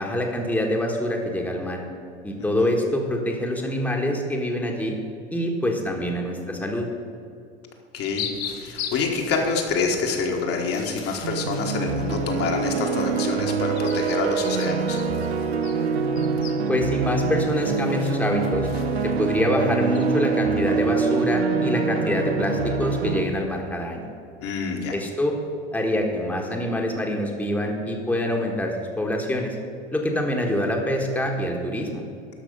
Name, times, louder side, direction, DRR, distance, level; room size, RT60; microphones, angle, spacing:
voice 1, 0.0-1.8 2.2-4.9 5.3-6.9 16.7-18.7 19.0-24.0 24.9-25.3 25.7-29.6 29.9-32.0, left 1 dB, 5° left, 0 dB, 1.5 m, -25 dB
sound 1, 7.9-21.4, left 7 dB, 75° left, 1.1 m, -41 dB
voice 2, 7.9-8.3 8.6-15.0 24.4-24.9, left 4 dB, 45° left, 1 dB, 1.7 m, -27 dB
sound 2, 11.2-23.2, right 5 dB, 90° right, 0.7 m, -25 dB
12.5 x 5.7 x 5.5 m, 2.4 s
hypercardioid pair, 80°, 31 cm